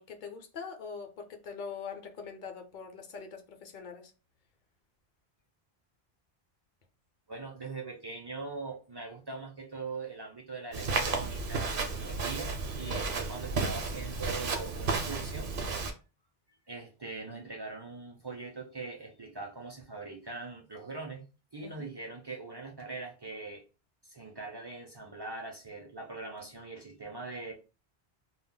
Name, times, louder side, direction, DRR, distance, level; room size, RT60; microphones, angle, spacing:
voice 1, 0.0-4.1 21.6-21.9, left 5 dB, 55° left, 0.7 m, -43 dB
voice 2, 7.3-15.5 16.7-21.2 21.5-23.6 24.0-27.5, right 3 dB, 35° right, 0.4 m, -42 dB
Walk footsteps, 10.7-15.9, right 4 dB, 65° right, 0.8 m, -33 dB
2.2 x 2.1 x 3.7 m
omnidirectional pair, 1.0 m